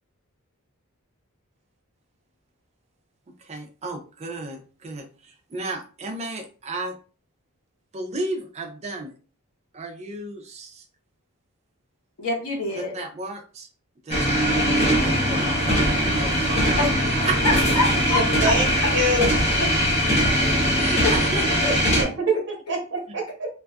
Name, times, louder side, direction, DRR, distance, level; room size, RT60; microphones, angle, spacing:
voice 1, 3.4-7.0 7.9-9.1 9.7-10.9 12.8-13.7 14.0-16.7 17.0-17.4 20.8-22.0, right 2 dB, 30° right, 3 dB, 0.4 m, -33 dB
voice 2, 12.2-12.9 16.8-16.9 17.8-18.5 20.0-20.4 21.0-21.7 22.0-22.1, left 3 dB, 75° left, 0 dB, 0.8 m, -27 dB
sound 1, 14.1-22.0, equal, 30° left, 0.7 m, -21 dB
voice 3, 18.1-19.3 21.9-23.5, right 1 dB, 55° right, 1 dB, 0.8 m, -25 dB
2.5 x 2.3 x 2.3 m, 0.37 s
head